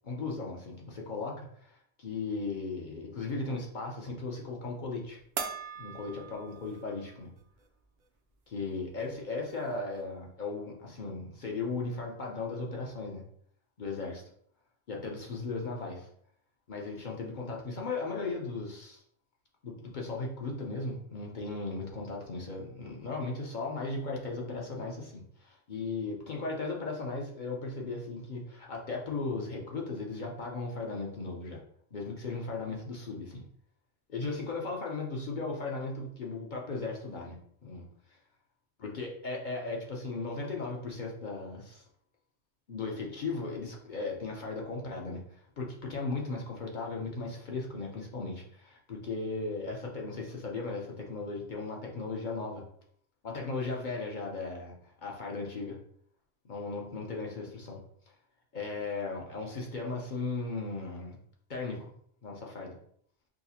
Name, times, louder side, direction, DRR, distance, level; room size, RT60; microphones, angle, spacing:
voice 1, 0.0-5.2 5.8-7.3 8.5-13.2 13.8-14.2 14.9-16.1 16.7-19.0 19.6-31.6 31.9-33.4 34.1-37.4 37.6-37.9 38.8-41.8 42.7-52.6 53.2-54.7 55.0-55.8 56.4-57.8 58.5-61.2 61.5-61.9 62.2-62.8, left 3 dB, 50° left, -1 dB, 0.6 m, -37 dB
sound 1, 5.4-7.0 7.4-7.5 9.0-9.1 9.4-10.1, right 7 dB, 60° right, 0.5 m, -40 dB
4.7 x 2.0 x 2.7 m, 0.64 s
omnidirectional pair, 1.3 m